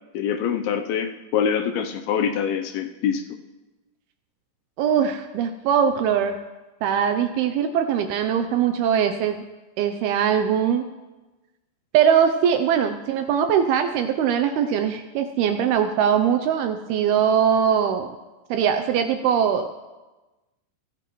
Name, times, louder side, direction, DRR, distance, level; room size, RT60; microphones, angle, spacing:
voice 1, 0.1-3.2, left 7 dB, 80° left, 7 dB, 2.2 m, -24 dB
voice 2, 4.8-6.4 6.8-9.4 9.8-10.8 11.9-18.1 18.5-19.7, right 8 dB, 80° right, 8 dB, 2.3 m, -21 dB
23.0 x 15.0 x 3.1 m, 1.2 s
omnidirectional pair, 5.1 m